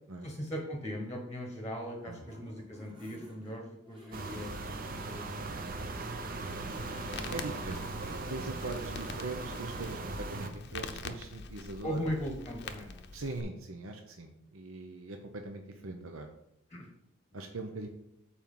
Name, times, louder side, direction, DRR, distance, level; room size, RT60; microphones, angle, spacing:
voice 1, 0.2-5.6 6.5-7.0 8.6-8.7 11.8-13.1 16.7-16.9 17.3-17.5, equal, 15° left, 1 dB, 1.0 m, -39 dB
sound 1, 1.8-5.6 6.0-6.1 6.4-6.5, equal, 20° right, 1.4 m, -56 dB
sound 2, 4.1-10.5, right 3 dB, 45° right, 0.7 m, -39 dB
Crackle, 6.5-13.4, left 4 dB, 55° left, 0.6 m, -45 dB
voice 2, 7.3-7.8 8.3-12.0 13.1-16.3 17.3-17.9, right 3 dB, 90° right, 4 dB, 0.8 m, -41 dB
7.1 x 4.4 x 5.4 m, 0.80 s
head